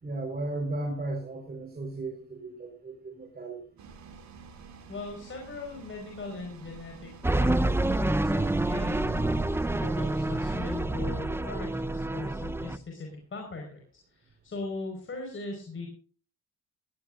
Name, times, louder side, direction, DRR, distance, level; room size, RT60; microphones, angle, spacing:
voice 1, 0.0-3.8, right 2 dB, 30° right, 1 dB, 4.6 m, -35 dB
sound 1, 3.8-10.8, right 5 dB, 65° right, 4.2 m, -49 dB
voice 2, 4.9-9.5 9.8-13.8 14.1-15.9, left 3 dB, 40° left, 2 dB, 4.9 m, -39 dB
sound 2, 7.2-12.8, right 2 dB, 10° right, 0.8 m, -27 dB
18.0 x 16.5 x 2.5 m, 0.41 s
cardioid pair, 90°, 30 cm